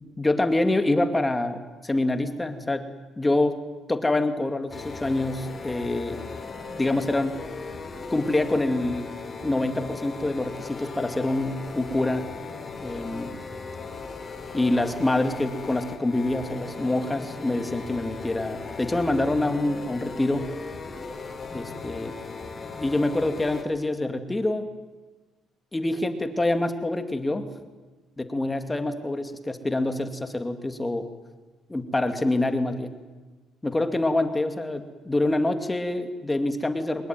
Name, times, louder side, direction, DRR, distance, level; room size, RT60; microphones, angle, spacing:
voice 1, 0.0-2.9 3.2-3.6 3.9-6.2 6.7-7.4 8.1-9.1 9.4-12.3 12.8-13.4 14.5-20.5 21.5-22.2 22.8-24.7 25.7-27.5 28.2-31.1 31.7-32.9 33.6-37.1, left 2 dB, 10° left, 8 dB, 2.3 m, -26 dB
sound 1, 4.7-23.6, left 4 dB, 30° left, 4.2 m, -38 dB
24.0 x 21.0 x 9.6 m, 1.2 s
cardioid pair, 125°, 0 cm